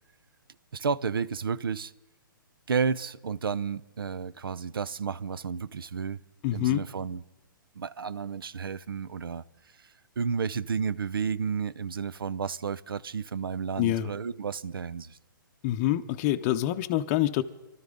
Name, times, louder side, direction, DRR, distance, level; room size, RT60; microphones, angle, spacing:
voice 1, 0.7-1.9 2.7-6.2 6.5-7.2 7.8-15.2, right 6 dB, 90° right, 0.6 m, -32 dB
voice 2, 6.4-6.8 13.8-14.1 15.6-17.4, left 13 dB, 30° left, 0.6 m, -26 dB
24.0 x 12.5 x 3.9 m
hypercardioid pair, 140°, 12 cm